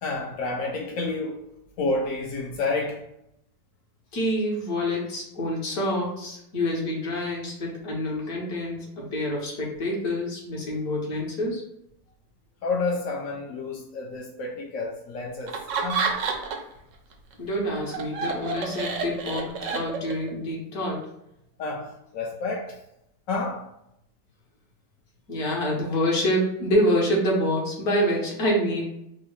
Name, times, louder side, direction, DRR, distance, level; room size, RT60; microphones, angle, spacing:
voice 1, 0.0-1.4 1.8-3.1 12.6-16.2 21.6-22.8 23.3-23.7, left 3 dB, 85° left, 0.7 m, -30 dB
voice 2, 4.1-11.6 17.4-21.1 25.3-28.8, equal, 60° left, 1.3 m, -27 dB
Laughter, 15.5-16.8 17.1-20.3, right 5 dB, 80° right, 0.7 m, -29 dB
3.6 x 2.0 x 4.3 m
omnidirectional pair, 2.0 m